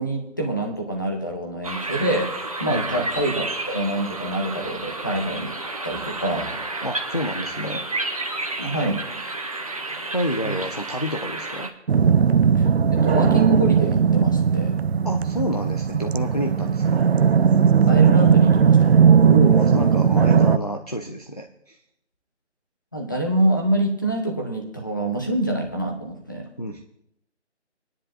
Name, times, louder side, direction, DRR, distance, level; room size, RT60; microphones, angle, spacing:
voice 1, 0.0-2.3 2.6-5.5 5.8-6.6 8.6-9.0 10.4-10.5 12.6-14.8 17.9-18.9 22.9-26.5, right 1 dB, 15° left, 1 dB, 0.9 m, -26 dB
sound 1, 1.6-11.7, right 2 dB, 30° right, 0.8 m, -31 dB
voice 2, 2.7-3.3 6.8-7.8 10.1-11.7 15.0-17.0 19.2-21.8 26.6-26.8, equal, 35° left, 4 dB, 0.4 m, -28 dB
sound 2, 11.9-20.6, right 7 dB, 60° right, 0.5 m, -17 dB
20.0 x 10.0 x 2.6 m, 0.79 s
figure-of-eight pair, 175°, 36 cm